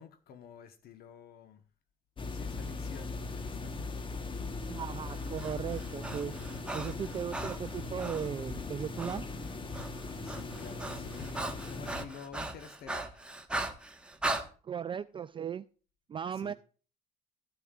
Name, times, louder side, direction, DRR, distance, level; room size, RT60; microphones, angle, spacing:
voice 1, 0.0-1.6 2.3-3.8 9.9-13.2 16.3-16.5, left 7 dB, 65° left, 1.1 m, -50 dB
sound 1, 2.2-12.1, left 3 dB, 30° left, 1.2 m, -39 dB
voice 2, 4.7-6.4 6.7-9.2 14.6-15.7 16.1-16.5, right 8 dB, 30° right, 0.4 m, -37 dB
Breathing, 5.1-8.3 9.0-9.2 9.5-14.5, right 2 dB, 5° right, 1.3 m, -38 dB
14.5 x 8.9 x 2.4 m
cardioid pair, 110°, 17 cm